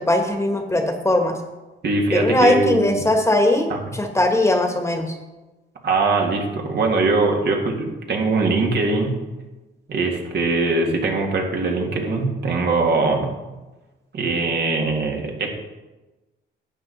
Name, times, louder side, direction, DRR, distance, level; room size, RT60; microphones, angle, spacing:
voice 1, 0.0-1.4 2.1-5.1, left 1 dB, 15° left, 4 dB, 1.5 m, -19 dB
voice 2, 1.8-3.0 3.7-3.8 5.8-9.2 9.9-13.3 14.1-15.5, right 3 dB, 55° right, 1 dB, 2.3 m, -21 dB
11.5 x 8.7 x 4.2 m, 1.1 s
cardioid pair, 90°, 20 cm